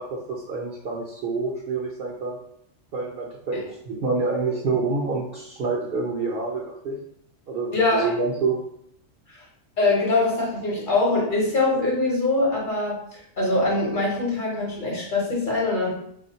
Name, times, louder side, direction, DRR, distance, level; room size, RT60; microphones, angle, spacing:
voice 1, 0.0-2.4 2.9-3.6 3.9-7.0 7.5-8.6, right 4 dB, 60° right, -2 dB, 0.7 m, -27 dB
voice 2, 7.7-8.1 9.3-9.4 9.8-15.9, left 2 dB, 45° left, -4 dB, 1.0 m, -23 dB
3.6 x 2.4 x 2.7 m, 0.71 s
omnidirectional pair, 1.3 m